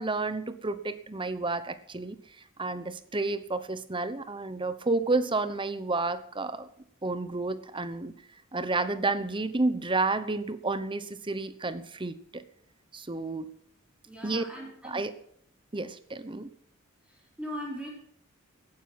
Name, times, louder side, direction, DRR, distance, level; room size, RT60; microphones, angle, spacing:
voice 1, 0.0-2.2 2.6-6.7 7.0-8.1 8.5-12.4 12.9-13.5 14.2-14.4 14.8-15.1 15.7-16.5, right 3 dB, 25° right, 13 dB, 1.0 m, -30 dB
voice 2, 14.1-15.0 17.1-17.9, equal, 5° right, -2 dB, 4.2 m, -39 dB
16.5 x 9.8 x 6.0 m, 0.67 s
head